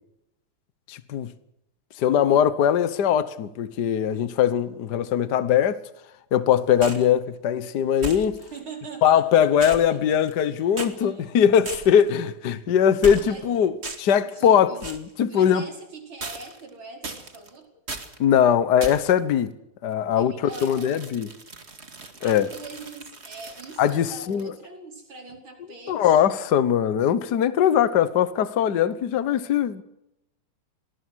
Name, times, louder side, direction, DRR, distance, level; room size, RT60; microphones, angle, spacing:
voice 1, 0.9-1.3 2.0-5.8 6.3-8.4 9.0-15.6 18.2-19.5 19.8-20.3 20.6-21.3 22.2-22.5 23.8-24.5 25.9-29.8, left 9 dB, 55° left, 1.6 m, -21 dB
sound 1, 6.8-7.1 8.0-8.6 9.6-10.5 10.8-10.9 11.7-12.1 13.0-13.5 13.8-14.2 14.8-15.1 16.2-16.7 17.0-17.5 17.9-18.2 18.8-19.2 20.5-24.5, right 3 dB, 30° right, 2.3 m, -37 dB
voice 2, 8.5-10.0 11.0-11.3 12.5-12.7 13.2-13.6 14.3-14.8 15.3-17.7 20.2-21.0 22.2-26.2, right 3 dB, 75° right, 5.6 m, -42 dB
26.5 x 20.0 x 6.3 m
omnidirectional pair, 2.3 m